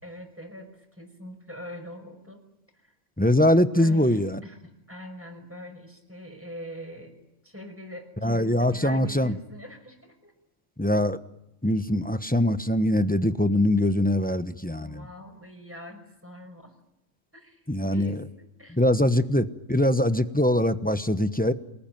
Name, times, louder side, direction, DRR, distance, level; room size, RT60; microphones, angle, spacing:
voice 1, 0.0-2.4 2.7-2.9 3.8-4.6 4.9-7.1 7.4-10.3 14.8-16.7 17.3-19.1, equal, 10° right, 4 dB, 6.0 m, -43 dB
voice 2, 3.2-4.4 8.2-9.3 10.8-11.2 11.6-15.1 17.7-18.2 18.8-21.5, left 1 dB, 10° left, 10 dB, 0.9 m, -22 dB
28.0 x 20.0 x 9.1 m, 0.86 s
omnidirectional pair, 1.4 m